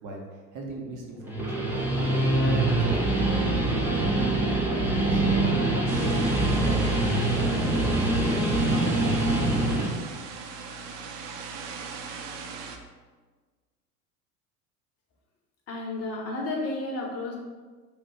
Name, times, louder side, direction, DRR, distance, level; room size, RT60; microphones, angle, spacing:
voice 1, 0.0-4.0 4.7-9.1, right 1 dB, 40° right, 0 dB, 1.0 m, -38 dB
Guitar, 1.2-9.9, right 2 dB, 5° right, 0.5 m, -24 dB
sound 1, 5.9-12.8, right 5 dB, 55° right, 0.6 m, -39 dB
voice 2, 15.7-17.4, left 2 dB, 35° left, -1 dB, 0.9 m, -32 dB
3.2 x 2.5 x 4.4 m, 1.4 s
hypercardioid pair, 80°, 46 cm